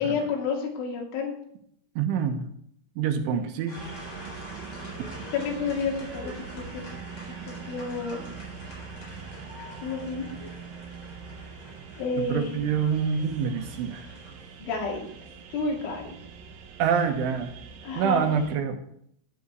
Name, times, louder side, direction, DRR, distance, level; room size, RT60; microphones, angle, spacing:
voice 1, 0.0-1.4 3.3-3.6 5.3-6.8 7.7-8.3 9.8-10.5 12.0-12.6 14.6-15.1 15.5-16.2 17.8-18.3, left 4 dB, 80° left, -1 dB, 4.8 m, -30 dB
voice 2, 2.0-2.5 3.0-3.8 12.2-14.1 16.8-17.6 18.0-18.8, right 7 dB, 85° right, 5 dB, 3.7 m, -26 dB
sound 1, 3.7-15.4, left 1 dB, 30° left, 4.3 m, -45 dB
sound 2, 3.8-18.6, right 6 dB, 65° right, 2.4 m, -43 dB
13.0 x 10.0 x 4.6 m, 0.69 s
omnidirectional pair, 5.4 m